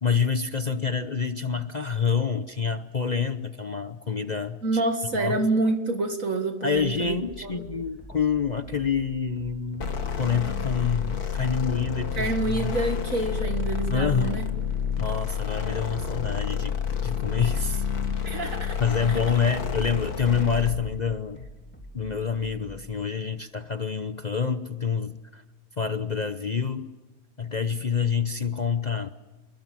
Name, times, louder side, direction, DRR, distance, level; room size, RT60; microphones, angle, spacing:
voice 1, 0.0-4.8 5.1-5.4 6.6-9.9 10.2-12.8 13.9-14.4 15.0-16.8 17.0-17.9 18.8-21.5 21.9-25.4 25.8-26.9 27.4-29.1, left 6 dB, 35° left, 9 dB, 0.8 m, -27 dB
voice 2, 4.6-7.6 12.1-14.4 18.2-18.8 19.1-19.2, right 2 dB, 65° right, 5 dB, 2.2 m, -27 dB
sound 1, 6.7-23.0, equal, 5° left, 2.8 m, -46 dB
sound 2, 9.8-20.9, left 7 dB, 80° left, 2.2 m, -29 dB
29.0 x 20.5 x 7.7 m, 1.2 s
omnidirectional pair, 1.6 m